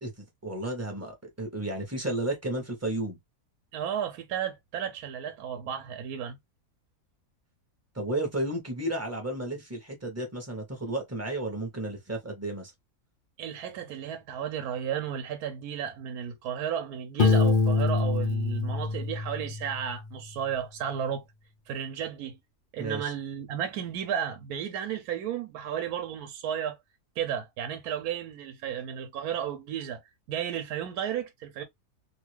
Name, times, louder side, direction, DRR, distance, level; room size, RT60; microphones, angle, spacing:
voice 1, 0.0-3.2 7.9-12.7 22.8-23.1, right 1 dB, 15° right, 0.7 m, -33 dB
voice 2, 3.7-6.4 13.4-21.2 21.7-22.4 22.7-26.8 27.2-30.0 30.3-31.6, right 9 dB, 75° right, 1.1 m, -33 dB
Piano, 17.2-19.9, left 4 dB, 70° left, 0.4 m, -25 dB
2.8 x 2.4 x 3.0 m
omnidirectional pair, 1.7 m